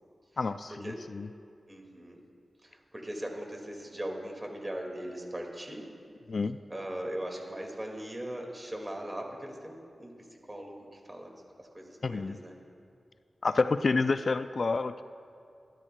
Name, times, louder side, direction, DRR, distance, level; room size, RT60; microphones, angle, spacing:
voice 1, 0.4-1.3 6.3-6.6 12.0-12.4 13.4-15.0, left 4 dB, 60° left, 11 dB, 0.3 m, -29 dB
voice 2, 1.7-2.2 2.6-5.9 6.7-12.5, right 1 dB, 25° right, 1 dB, 2.1 m, -40 dB
22.0 x 12.5 x 2.3 m, 2.4 s
cardioid pair, 65°, 0 cm